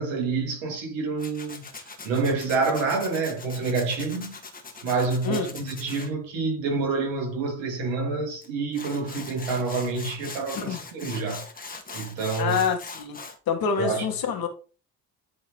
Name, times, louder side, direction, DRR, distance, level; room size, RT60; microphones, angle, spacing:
voice 1, 0.0-1.6 2.0-4.4 4.8-11.5 11.9-12.6 13.8-14.1, right 4 dB, 60° right, 2.4 m, -27 dB
Tools, 1.2-6.1 8.4-8.5 8.7-13.4, left 4 dB, 15° left, 1.5 m, -41 dB
voice 2, 12.4-13.2 13.5-14.5, left 6 dB, 45° left, 1.6 m, -26 dB
10.5 x 3.6 x 3.1 m
hypercardioid pair, 60°, 50 cm